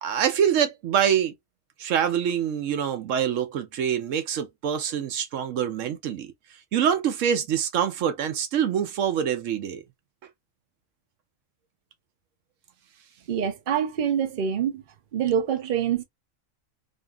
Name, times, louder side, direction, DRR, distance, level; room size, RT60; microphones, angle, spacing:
voice 1, 0.0-1.3 1.8-6.3 6.7-9.8, right 8 dB, 75° right, 0.9 m, -25 dB
voice 2, 13.3-14.8 15.1-16.0, right 8 dB, 50° right, 0.6 m, -25 dB
2.6 x 2.6 x 2.2 m
omnidirectional pair, 1.4 m